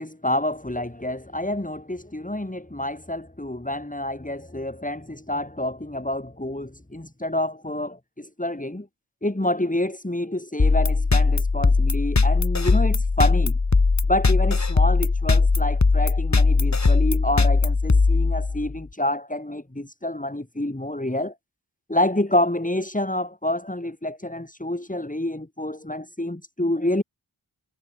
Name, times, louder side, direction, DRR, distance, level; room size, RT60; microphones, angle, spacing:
voice 1, 0.0-8.9 9.2-13.5 14.1-21.3 21.9-27.0, left 1 dB, 20° left, 7.0 m, -28 dB
sound 1, 10.6-18.8, left 4 dB, 40° left, 1.9 m, -19 dB
wide cardioid pair, 50°, 43 cm